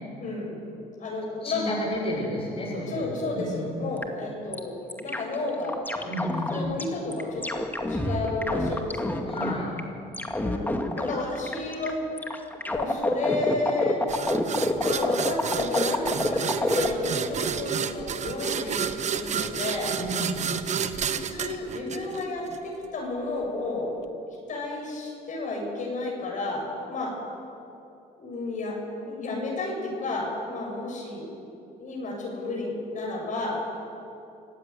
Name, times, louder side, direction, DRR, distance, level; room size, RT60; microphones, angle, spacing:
voice 1, 0.2-0.7 1.0-1.8 2.9-5.8 6.5-9.2 10.4-10.7 11.0-12.0 12.7-14.1 14.8-18.8 19.1-19.9 21.1-24.0 24.5-27.1 28.2-28.8 29.0-31.3 31.8-33.6, left 2 dB, 50° left, -1 dB, 7.6 m, -32 dB
voice 2, 1.4-3.8 6.0-6.6 9.3-9.7 20.0-20.5, left 1 dB, 35° left, -3 dB, 7.3 m, -32 dB
sound 1, 4.0-4.1 4.5-4.6 4.9-6.8 7.1-9.8 10.1-11.9 12.2-16.9, left 1 dB, 10° left, 2.1 m, -27 dB
sound 2, 14.1-22.6, right 7 dB, 45° right, 1.2 m, -30 dB
26.5 x 15.0 x 9.9 m, 2.7 s
cardioid pair, 110°, 17 cm